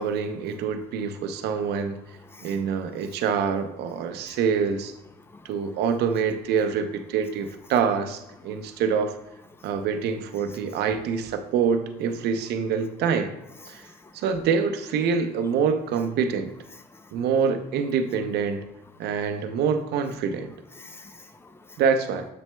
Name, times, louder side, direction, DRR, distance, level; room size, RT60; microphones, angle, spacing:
voice 1, 0.0-2.0 2.4-4.9 5.4-9.2 9.6-13.3 13.7-13.9 14.1-16.5 17.1-18.7 19.0-20.5 21.8-22.3, right 6 dB, 75° right, 7 dB, 0.6 m, -25 dB
voice 2, 2.2-2.6 4.3-4.4 9.6-9.7 13.7-14.1 16.9-17.1 20.8-21.8, left 3 dB, 15° left, 8 dB, 0.5 m, -49 dB
7.7 x 5.9 x 2.2 m, 0.86 s
cardioid pair, 110°, 17 cm